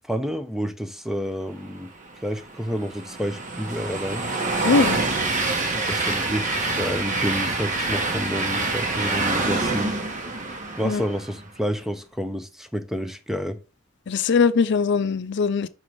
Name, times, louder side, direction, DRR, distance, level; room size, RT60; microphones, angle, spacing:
voice 1, 0.0-1.9 2.2-4.3 5.7-10.0 10.8-13.6, equal, ahead, 0.6 m, -29 dB
Train, 2.0-11.4, right 3 dB, 40° right, 1.3 m, -26 dB
voice 2, 4.6-5.0 10.8-11.0 14.1-15.7, left 5 dB, 60° left, 0.4 m, -21 dB
5.9 x 3.8 x 4.7 m
head